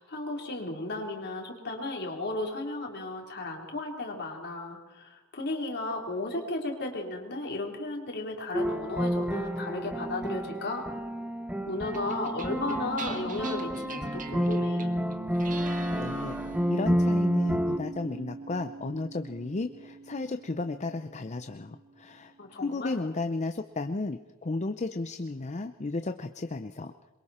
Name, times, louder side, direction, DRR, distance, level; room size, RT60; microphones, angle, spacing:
voice 1, 0.0-10.9 11.7-14.9 22.4-23.0, left 2 dB, 50° left, 1 dB, 3.8 m, -34 dB
Stepper - Piano Music with drums and a cow, 8.5-17.8, equal, 5° right, 0.9 m, -30 dB
sound 1, 11.9-22.5, right 4 dB, 40° right, 1.6 m, -41 dB
voice 2, 15.9-16.4 16.7-22.3 22.6-27.1, left 3 dB, 35° left, 9 dB, 0.6 m, -34 dB
26.5 x 22.5 x 4.3 m, 1.1 s
head